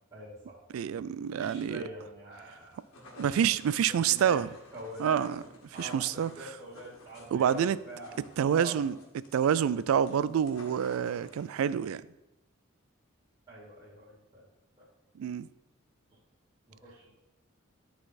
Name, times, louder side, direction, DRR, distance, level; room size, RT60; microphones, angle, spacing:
voice 1, 0.1-0.6 1.4-2.8 3.9-4.4 4.7-5.2 5.7-8.8 13.5-14.5 14.8-14.9 16.7-17.1, right 1 dB, 20° right, 2.3 m, -44 dB
voice 2, 0.7-1.8 3.2-4.5 5.0-5.4 5.8-6.3 7.3-7.8 8.4-9.0 9.3-12.0 15.2-15.5, right 8 dB, 90° right, 0.3 m, -27 dB
sound 1, 2.6-11.7, left 1 dB, 85° left, 1.6 m, -53 dB
10.5 x 4.1 x 4.1 m
head